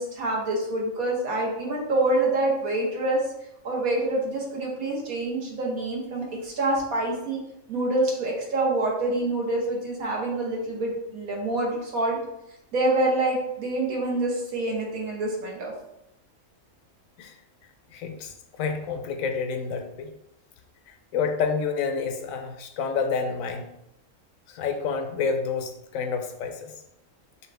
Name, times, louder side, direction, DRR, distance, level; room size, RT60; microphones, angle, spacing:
voice 1, 0.0-3.2 3.6-7.4 7.7-12.2 12.7-15.7, right 2 dB, 85° right, -2 dB, 1.7 m, -26 dB
voice 2, 17.9-20.1 20.9-23.7 24.5-26.7, left 5 dB, 80° left, 5 dB, 1.0 m, -29 dB
5.7 x 2.8 x 3.4 m, 0.83 s
omnidirectional pair, 1.4 m